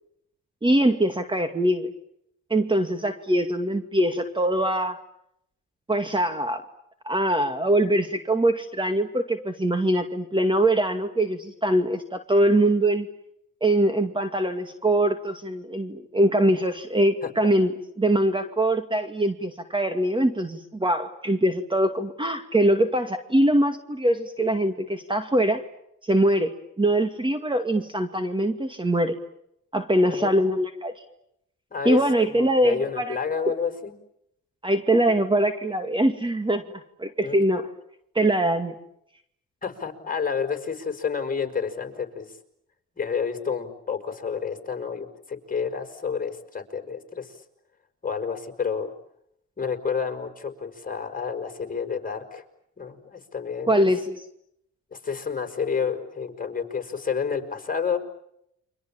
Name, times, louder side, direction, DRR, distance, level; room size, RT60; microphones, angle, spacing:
voice 1, 0.6-1.9 2.5-5.0 5.9-6.6 7.0-13.1 13.6-17.7 18.0-25.6 26.0-29.2 29.7-30.9 31.8-33.2 33.5-33.6 34.6-37.7 38.1-38.7 53.7-54.2, right 1 dB, 15° right, 8 dB, 2.3 m, -23 dB
voice 2, 30.1-30.4 31.7-32.0 32.3-33.9 37.2-37.5 39.6-42.3 43.0-47.3 48.0-48.9 49.6-52.4 52.8-53.9 54.9-58.0, left 6 dB, 30° left, 6 dB, 5.5 m, -29 dB
30.0 x 25.0 x 7.3 m, 0.77 s
cardioid pair, 90°, 30 cm